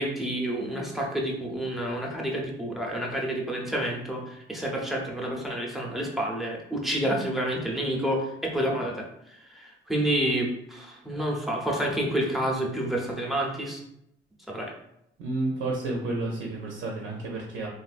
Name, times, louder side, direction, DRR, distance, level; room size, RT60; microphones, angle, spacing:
voice 1, 0.0-13.8 14.5-14.7, right 1 dB, ahead, -2 dB, 0.7 m, -29 dB
voice 2, 15.2-17.7, right 2 dB, 90° right, -1 dB, 0.6 m, -31 dB
3.1 x 2.4 x 2.5 m, 0.78 s
cardioid pair, 90°, 20 cm